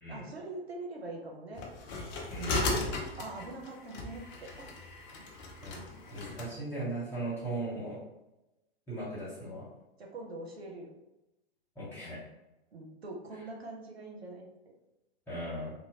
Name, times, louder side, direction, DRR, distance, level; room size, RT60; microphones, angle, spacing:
voice 1, 0.1-1.7 2.4-4.7 10.0-10.9 12.7-14.5, right 2 dB, 80° right, 0 dB, 0.6 m, -43 dB
sound 1, 1.6-6.5, left 2 dB, 25° left, 0.3 m, -36 dB
voice 2, 2.3-2.7 5.6-5.8 6.1-8.0 8.9-9.7 11.7-12.2 15.3-15.7, right 1 dB, 5° left, -12 dB, 1.5 m, -38 dB
3.0 x 2.1 x 2.7 m, 0.97 s
figure-of-eight pair, 105°, 31 cm